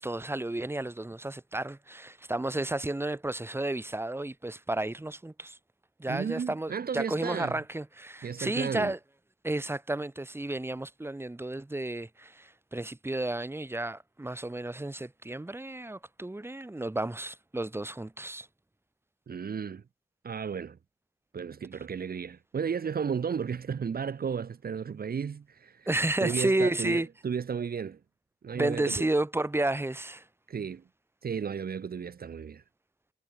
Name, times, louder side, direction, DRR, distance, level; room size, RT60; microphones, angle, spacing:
voice 1, 0.0-5.6 6.0-9.0 9.4-18.5 25.9-27.1 28.5-30.2, right 2 dB, 10° right, 2.5 m, -32 dB
voice 2, 6.1-7.6 8.2-8.9 19.3-19.8 20.2-20.8 21.3-25.9 26.2-28.0 28.4-29.1 30.5-30.8 31.2-32.6, right 6 dB, 50° right, 1.3 m, -34 dB
wide cardioid pair, 120°, 19 cm